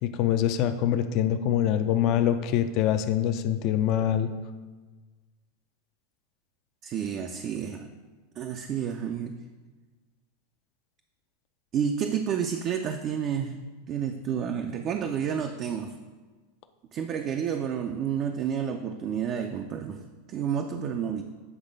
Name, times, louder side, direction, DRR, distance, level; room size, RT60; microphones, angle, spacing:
voice 1, 0.0-4.3, left 10 dB, 45° left, 8 dB, 0.4 m, -24 dB
voice 2, 6.8-7.9 8.4-9.3 11.7-15.9 16.9-20.0 20.3-21.2, right 8 dB, 35° right, 5 dB, 0.4 m, -30 dB
8.0 x 3.2 x 5.2 m, 1.3 s
supercardioid pair, 135°, 0 cm